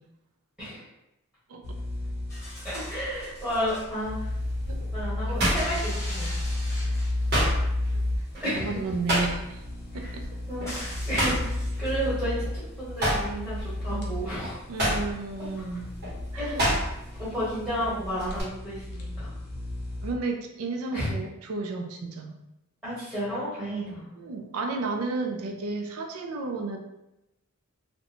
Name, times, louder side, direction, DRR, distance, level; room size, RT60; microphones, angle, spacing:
sound 1, 1.6-20.1, left 1 dB, 45° left, 0.5 m, -33 dB
sound 2, 2.3-3.9 5.5-7.5 10.7-12.1 13.3-13.4, left 1 dB, 10° left, 0.7 m, -41 dB
voice 1, 2.6-4.3 4.9-6.3 8.4-8.8 9.9-10.1 10.5-14.6 16.4-16.6 17.2-19.3 20.9-21.1 22.8-24.1, equal, 5° right, -12 dB, 1.1 m, -32 dB
sound 3, 3.1-3.5 4.0-6.5 6.8-9.7 10.0-10.3 10.6-12.5 12.9-17.2 17.5-18.4, equal, 45° right, 0.8 m, -29 dB
voice 2, 8.5-9.6 9.9-10.3 13.9-14.2 14.7-15.9 16.3-16.6 20.0-22.4 24.2-26.8, right 3 dB, 75° right, 3 dB, 0.4 m, -32 dB
2.6 x 2.1 x 2.7 m, 0.91 s
head